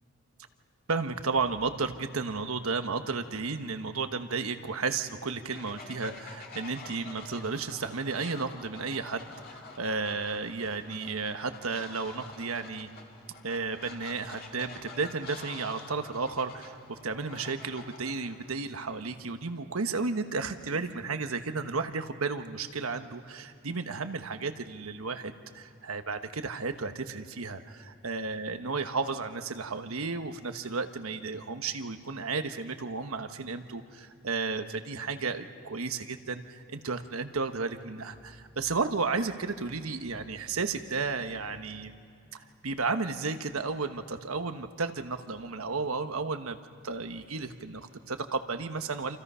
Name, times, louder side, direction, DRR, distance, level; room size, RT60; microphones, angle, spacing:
voice 1, 0.9-12.9 13.4-41.9 42.3-46.6 46.8-49.2, right 4 dB, 90° right, 8 dB, 1.2 m, -33 dB
Fowl, 5.5-18.5, left 3 dB, 45° left, 2.4 m, -48 dB
28.0 x 27.0 x 5.6 m, 2.5 s
head